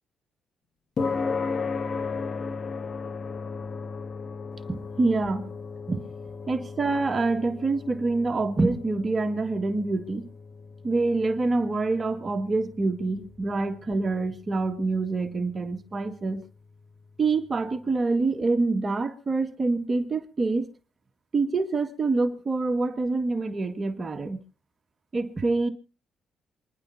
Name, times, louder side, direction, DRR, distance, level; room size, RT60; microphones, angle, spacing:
sound 1, 1.0-17.5, left 4 dB, 50° left, 1.4 m, -36 dB
voice 1, 4.7-5.5 5.9-6.0 6.5-10.3 10.8-16.4 17.2-20.7 21.3-24.4 25.1-25.7, right 3 dB, 30° right, 1.8 m, -26 dB
28.0 x 11.0 x 2.8 m
cardioid pair, 90°, 0 cm